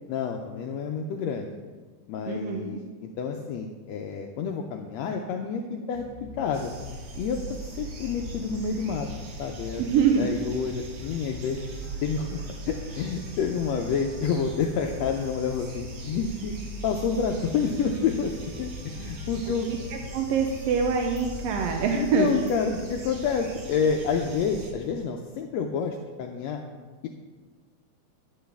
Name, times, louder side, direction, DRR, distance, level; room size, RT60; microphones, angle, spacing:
voice 1, 0.1-1.5 2.1-6.0 6.3-6.7 7.2-9.1 9.4-9.8 10.2-11.6 12.0-16.5 16.8-18.3 18.6-19.7 21.9-26.6, left 6 dB, 80° left, 3 dB, 1.5 m, -29 dB
voice 2, 2.3-2.8 9.8-10.3 20.1-22.3, right 6 dB, 80° right, 2 dB, 1.5 m, -24 dB
sound 1, 5.9-23.3, equal, 25° left, 3.4 m, -42 dB
sound 2, 6.5-24.7, right 2 dB, 60° right, 2.1 m, -42 dB
11.0 x 7.5 x 3.4 m, 1.4 s
omnidirectional pair, 3.5 m